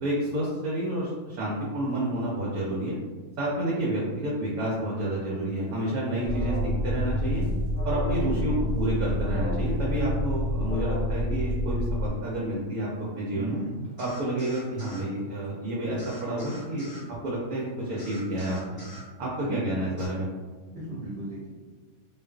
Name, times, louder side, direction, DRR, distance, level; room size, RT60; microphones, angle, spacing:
voice 1, 0.0-3.0 3.4-6.6 6.8-7.4 7.8-12.9 13.2-13.6 14.0-18.8 19.2-20.3, right 1 dB, 85° right, -5 dB, 1.1 m, -29 dB
sound 1, 1.9-2.2 2.9-3.0 3.3-3.4 4.7-4.8 5.5-7.8 8.2-8.3 9.2-9.3 9.6-10.0 10.6-10.8 12.0-12.9 13.8-14.1, equal, 30° right, 0.9 m, -40 dB
voice 2, 3.7-4.1 8.1-8.7 13.3-13.8 19.4-19.8 20.7-21.5, right 2 dB, 60° right, -8 dB, 0.7 m, -37 dB
Alarm, 6.2-12.1, equal, 65° left, 0.5 m, -28 dB
sound 2, 14.0-15.1 16.0-17.0 18.0-19.0 20.0-20.1, equal, 20° left, 0.8 m, -45 dB
2.5 x 2.3 x 2.2 m, 1.4 s
omnidirectional pair, 1.5 m